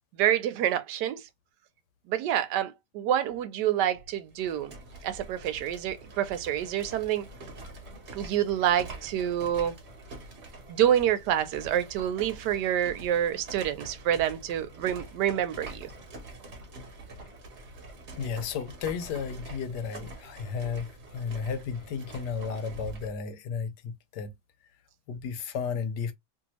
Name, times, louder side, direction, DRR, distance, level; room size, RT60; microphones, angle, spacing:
voice 1, 0.2-1.3 2.1-4.7 5.0-7.3 8.1-9.7 10.7-15.9, right 10 dB, 85° right, 1.2 m, -27 dB
sound 1, 4.3-23.2, right 2 dB, 45° right, 1.1 m, -45 dB
voice 2, 18.2-24.3 25.1-26.1, left 6 dB, 85° left, 1.3 m, -33 dB
2.9 x 2.7 x 2.9 m
omnidirectional pair, 1.8 m